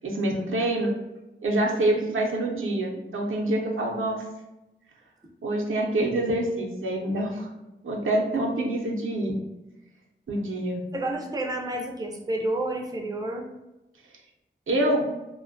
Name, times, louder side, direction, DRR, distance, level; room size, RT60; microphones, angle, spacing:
voice 1, 0.0-0.9 1.4-4.2 5.4-7.5 7.8-9.4 10.3-10.8 14.7-15.1, right 1 dB, 85° right, -2 dB, 0.5 m, -26 dB
voice 2, 10.9-13.4, right 1 dB, 20° right, 2 dB, 0.4 m, -30 dB
2.4 x 2.1 x 2.5 m, 1.0 s
wide cardioid pair, 60°, 20 cm